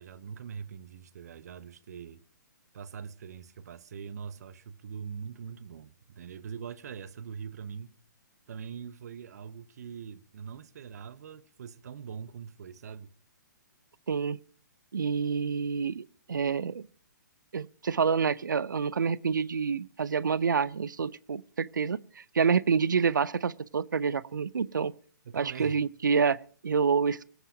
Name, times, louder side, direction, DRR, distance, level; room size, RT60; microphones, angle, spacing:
voice 1, 0.0-2.2 2.7-8.0 8.5-13.1 25.2-25.8, right 7 dB, 55° right, 1.0 m, -42 dB
voice 2, 14.1-14.4 14.9-16.9 17.5-24.9 25.3-27.3, right 6 dB, 75° right, 0.6 m, -28 dB
23.5 x 8.0 x 5.1 m
figure-of-eight pair, 125°, 10 cm